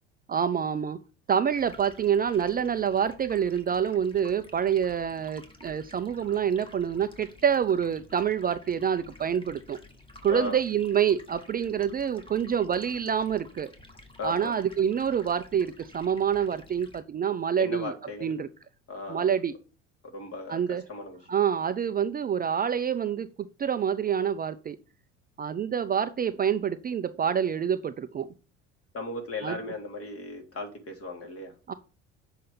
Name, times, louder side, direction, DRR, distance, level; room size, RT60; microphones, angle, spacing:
voice 1, 0.3-1.0 1.3-9.8 10.2-13.7 14.2-17.9 18.2-18.5 19.1-19.5 20.5-20.8 21.3-23.3 23.6-24.8 25.4-28.3 29.4-29.6 31.7-31.8, right 8 dB, 25° right, 10 dB, 0.6 m, -27 dB
Stream, 1.5-17.0, left 2 dB, 15° left, 2.2 m, -52 dB
voice 2, 14.2-14.5 17.5-18.3 18.9-19.3 20.1-21.3 28.9-31.5, left 3 dB, 40° left, 3 dB, 3.4 m, -37 dB
7.6 x 5.5 x 6.9 m, 0.36 s
figure-of-eight pair, 65°, 37 cm